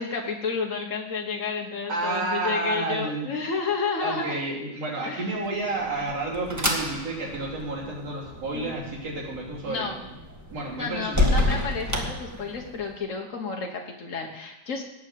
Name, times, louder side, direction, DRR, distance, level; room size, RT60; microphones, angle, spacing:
voice 1, 0.0-4.4 5.0-5.3 9.7-10.0 10.7-14.8, left 5 dB, 70° left, 1 dB, 0.7 m, -31 dB
voice 2, 1.9-3.3 4.0-10.1 10.5-11.4, right 2 dB, 55° right, -3 dB, 4.3 m, -30 dB
sound 1, 5.5-12.9, left 1 dB, 10° right, 0.8 m, -30 dB
18.0 x 6.5 x 7.6 m, 0.94 s
omnidirectional pair, 3.4 m